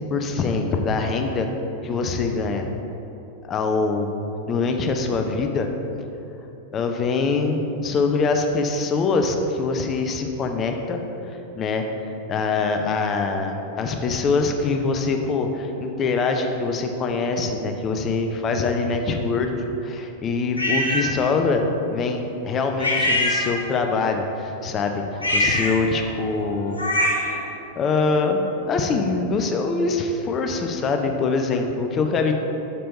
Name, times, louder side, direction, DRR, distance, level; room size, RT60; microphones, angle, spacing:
voice 1, 0.1-1.5 1.8-2.7 3.5-4.1 4.5-5.7 6.7-11.0 11.3-11.9 12.3-19.5 19.8-21.6 21.9-25.0 25.3-26.8 27.2-27.4 27.8-32.3, left 4 dB, 30° left, 4 dB, 0.6 m, -24 dB
sound 1, 20.6-21.1 22.8-23.9 25.1-27.4, left 1 dB, 85° left, 1.0 m, -23 dB
6.9 x 4.4 x 5.3 m, 2.9 s
figure-of-eight pair, 90°, 0 cm